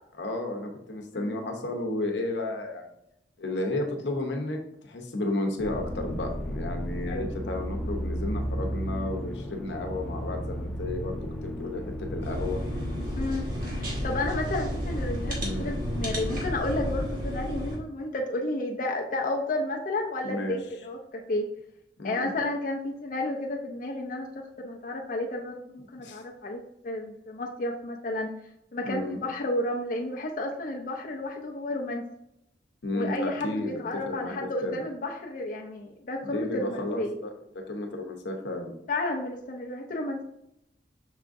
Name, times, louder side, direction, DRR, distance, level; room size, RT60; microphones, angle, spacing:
voice 1, 0.2-2.9 3.4-4.6 4.8-12.6 15.4-15.7 20.2-20.6 22.0-22.3 26.0-26.2 28.8-29.2 32.8-34.3 34.6-34.8 36.2-38.7, left 2 dB, 90° left, 3 dB, 0.8 m, -33 dB
sound 1, 5.6-16.9, equal, ahead, 0.6 m, -34 dB
sound 2, 12.2-17.8, equal, 55° right, 1.5 m, -33 dB
voice 2, 13.2-21.5 22.0-24.3 24.6-28.3 28.7-32.1 32.9-37.1 38.9-40.2, left 2 dB, 50° left, 1 dB, 0.5 m, -32 dB
5.6 x 3.6 x 2.5 m, 0.81 s
head